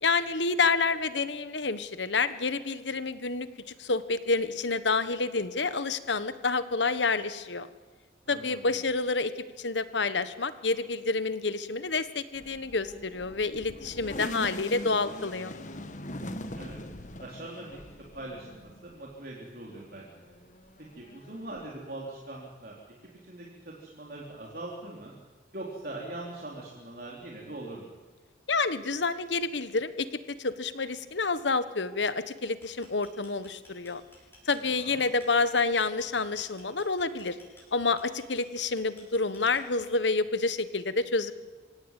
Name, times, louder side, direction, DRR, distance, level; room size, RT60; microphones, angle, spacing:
voice 1, 0.0-3.5 3.8-7.7 8.3-9.3 9.6-15.5 28.5-30.1 30.4-34.0 34.5-37.4 37.7-41.3, left 4 dB, 80° left, 13 dB, 1.4 m, -28 dB
voice 2, 8.3-8.8 16.0-16.8 17.2-17.8 18.1-20.1 21.0-22.8 23.2-25.1 25.5-27.9 34.7-35.0, right 2 dB, 55° right, -3 dB, 3.9 m, -42 dB
sound 1, 12.4-19.2 19.7-21.6, left 1 dB, 40° left, 1.5 m, -42 dB
sound 2, 32.6-40.1, left 1 dB, 15° left, 7.2 m, -56 dB
26.5 x 17.0 x 9.2 m, 1.3 s
head